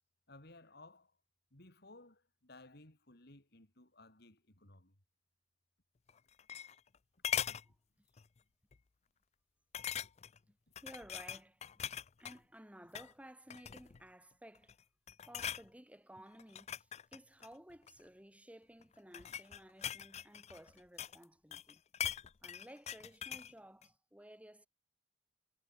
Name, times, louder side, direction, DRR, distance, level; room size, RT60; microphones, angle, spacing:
voice 1, 0.3-1.1 1.5-4.9, left 2 dB, 60° left, 3.9 m, -58 dB
sound 1, 6.1-7.0 7.2-7.7 8.2-8.4 8.7-8.8 9.7-10.4 10.8-12.4 12.8-13.1 13.5-14.0 14.5-14.8 15.1-15.7 16.4-18.0 18.8-21.2 21.5-23.5 23.8-23.9, left 9 dB, 35° left, 0.4 m, -41 dB
voice 2, 7.5-8.1 10.5-11.7 11.9-14.8 15.2-21.8 22.4-24.7, right 1 dB, 5° right, 6.4 m, -56 dB
head